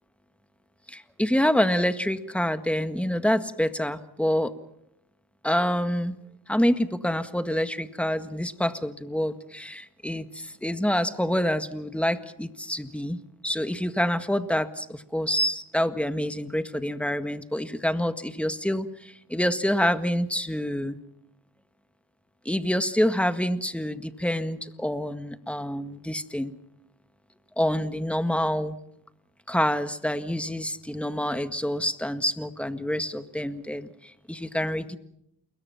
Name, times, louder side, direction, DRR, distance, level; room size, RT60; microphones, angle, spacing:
voice 1, 0.9-4.5 5.4-6.2 6.5-18.9 19.3-21.0 22.5-26.5 27.6-28.8 29.5-33.9 34.3-35.0, equal, 5° left, 10 dB, 1.8 m, -27 dB
29.0 x 21.5 x 5.9 m, 0.77 s
cardioid pair, 85°, 39 cm